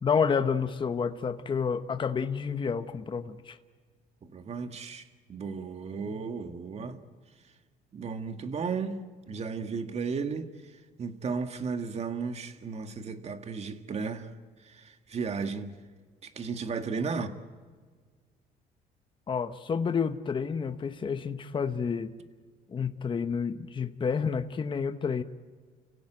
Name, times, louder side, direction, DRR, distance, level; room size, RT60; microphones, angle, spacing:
voice 1, 0.0-3.6 19.3-22.1 22.7-25.2, left 6 dB, 30° left, 1.0 m, -29 dB
voice 2, 4.2-7.0 7.9-9.0 9.3-14.3 14.6-15.8 16.2-17.4, right 5 dB, 40° right, 1.9 m, -34 dB
29.5 x 16.5 x 9.2 m
cardioid pair, 110°, 17 cm